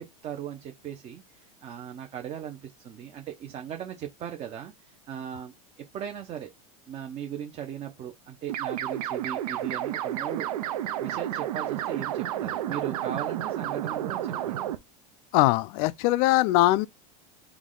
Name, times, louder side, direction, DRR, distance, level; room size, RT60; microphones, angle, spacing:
voice 1, 0.0-5.5 5.9-6.5 6.9-10.5 11.0-14.6, right 9 dB, 35° right, 0.8 m, -38 dB
sound 1, 8.5-14.8, right 12 dB, 85° right, 0.7 m, -31 dB
voice 2, 15.3-16.9, left 18 dB, 55° left, 0.4 m, -21 dB
3.6 x 3.1 x 3.8 m
supercardioid pair, 125°, 19 cm